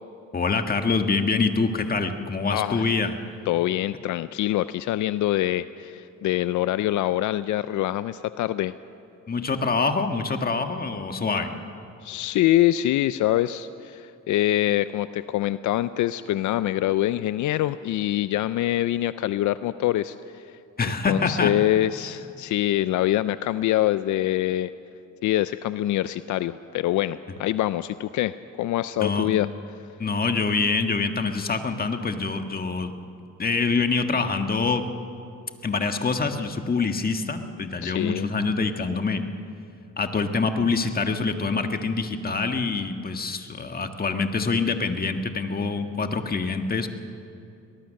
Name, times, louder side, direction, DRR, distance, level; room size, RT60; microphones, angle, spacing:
voice 1, 0.3-3.2 9.3-11.5 20.8-21.5 29.0-29.3 30.0-32.9 33.4-34.8 35.6-39.2 40.0-46.9, left 4 dB, 30° left, 6 dB, 1.6 m, -25 dB
voice 2, 2.5-2.8 3.5-8.7 12.0-24.7 25.2-29.5 37.8-38.3, left 14 dB, 75° left, 14 dB, 0.5 m, -25 dB
23.5 x 19.5 x 6.5 m, 2.7 s
cardioid pair, 90°, 30 cm